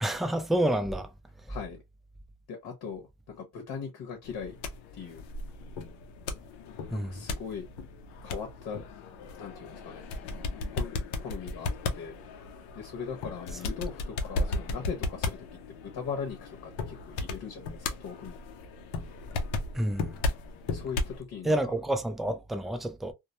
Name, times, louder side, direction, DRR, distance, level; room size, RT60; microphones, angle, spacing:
voice 1, 0.0-1.1 6.9-7.2 19.7-20.1 21.4-23.1, right 1 dB, ahead, 0.3 m, -29 dB
voice 2, 1.5-1.8 2.5-4.6 4.9-5.2 6.9-7.7 8.2-8.8 9.3-10.1 10.7-12.2 12.7-18.4 20.7-21.7, left 6 dB, 60° left, 0.9 m, -39 dB
sound 1, 4.2-21.2, left 3 dB, 85° left, 0.6 m, -36 dB
2.1 x 2.0 x 2.8 m
supercardioid pair, 85°, 40 cm